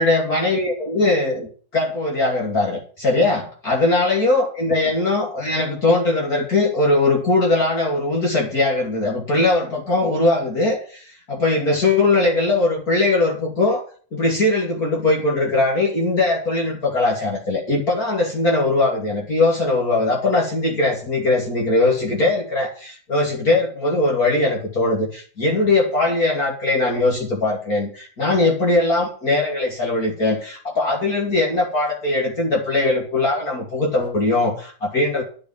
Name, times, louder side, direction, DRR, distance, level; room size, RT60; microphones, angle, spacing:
voice 1, 0.0-13.8 14.1-35.2, left 2 dB, 45° left, -1 dB, 3.2 m, -20 dB
11.5 x 6.4 x 9.2 m, 0.43 s
omnidirectional pair, 2.3 m